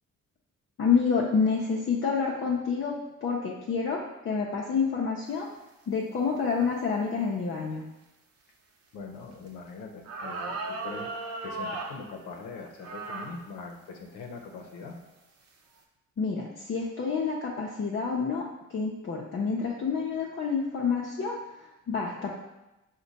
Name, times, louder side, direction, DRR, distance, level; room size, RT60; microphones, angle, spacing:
voice 1, 0.8-2.9 3.2-4.0 4.2-5.5 5.9-7.8 16.2-18.4 18.7-21.4 21.9-22.3, left 5 dB, 45° left, -3 dB, 0.6 m, -28 dB
voice 2, 8.9-11.1 11.4-15.0, left 4 dB, 85° left, 3 dB, 0.7 m, -42 dB
sound 1, 9.5-9.6 10.0-12.0 12.8-13.3 14.0-14.1 14.8-15.1, right 2 dB, 55° right, 0.7 m, -36 dB
4.9 x 2.2 x 4.0 m, 0.96 s
cardioid pair, 90°, 30 cm